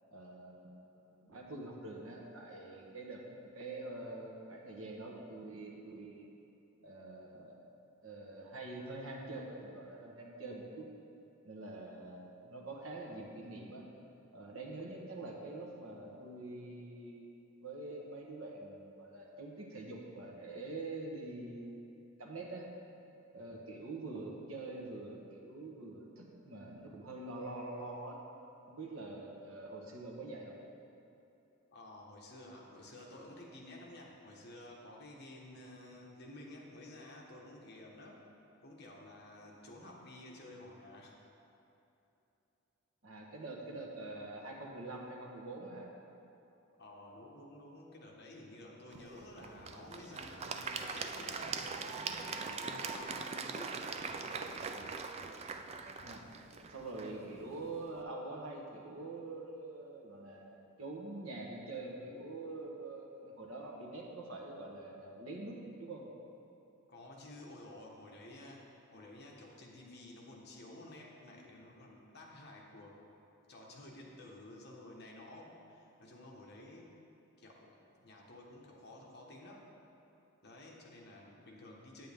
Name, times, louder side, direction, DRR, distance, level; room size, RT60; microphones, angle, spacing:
voice 1, 0.1-3.2 3.5-6.2 6.8-7.6 8.0-10.9 11.4-13.8 14.3-17.3 17.6-21.9 22.2-22.7 23.3-28.2 28.7-30.6 43.0-45.9 56.0-56.3 56.7-66.0, right 2 dB, 75° right, -1 dB, 1.3 m, -45 dB
voice 2, 31.7-38.2 38.6-41.1 46.8-54.6 66.9-68.7 68.9-73.0 73.5-77.0 77.4-79.6 80.4-82.1, left 1 dB, 50° left, -2 dB, 1.3 m, -52 dB
Applause / Crowd, 48.9-58.0, right 5 dB, 30° right, 0.3 m, -42 dB
9.1 x 8.7 x 3.5 m, 2.9 s
head